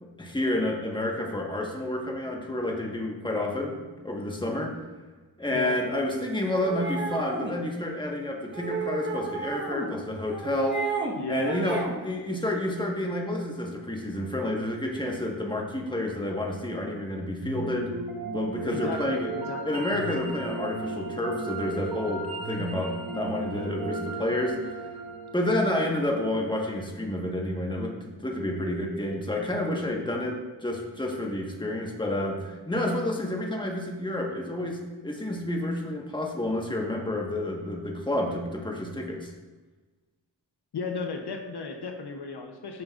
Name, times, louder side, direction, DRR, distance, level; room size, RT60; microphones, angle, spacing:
voice 1, 0.0-4.8 5.4-10.9 11.3-17.9 18.3-19.3 19.6-24.9 25.3-39.3, left 1 dB, 10° left, -1 dB, 1.3 m, -30 dB
sound 1, 6.5-7.5 8.5-9.9 10.2-11.1 11.4-12.0, right 4 dB, 30° right, 1.1 m, -32 dB
voice 2, 11.2-11.8 18.7-19.8 40.7-42.8, left 4 dB, 75° left, 4 dB, 0.8 m, -35 dB
sound 2, 17.4-26.6, right 2 dB, 60° right, 1.0 m, -35 dB
9.7 x 6.3 x 2.4 m, 1.3 s
wide cardioid pair, 65°, 40 cm